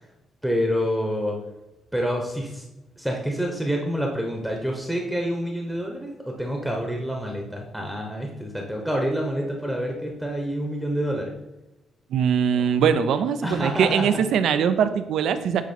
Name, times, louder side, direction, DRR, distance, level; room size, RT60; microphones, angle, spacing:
voice 1, 0.4-1.4 1.9-2.6 3.0-11.3 13.4-14.2, equal, ahead, 1 dB, 0.9 m, -27 dB
voice 2, 12.1-15.6, right 7 dB, 75° right, 10 dB, 0.5 m, -21 dB
8.2 x 3.0 x 4.3 m, 0.97 s
cardioid pair, 90°, 0 cm